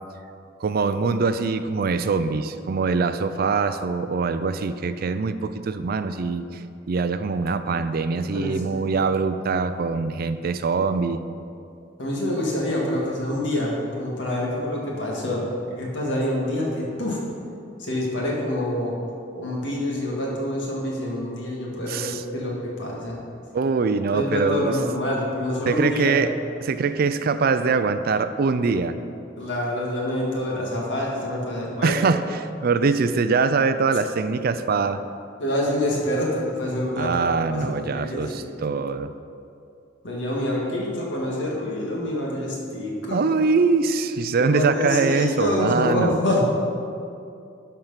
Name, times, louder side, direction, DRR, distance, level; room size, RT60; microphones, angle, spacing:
voice 1, 0.6-11.2 21.9-22.2 23.5-24.8 25.7-26.3 26.6-29.0 31.8-35.0 37.0-39.1 43.1-46.2, right 4 dB, 55° right, 12 dB, 0.4 m, -23 dB
voice 2, 8.3-8.6 12.0-17.2 17.8-19.0 19.4-23.2 24.1-26.2 29.4-32.0 35.4-38.4 40.0-43.3 44.4-46.4, left 1 dB, 75° left, -3 dB, 2.0 m, -26 dB
11.5 x 4.7 x 5.7 m, 2.5 s
head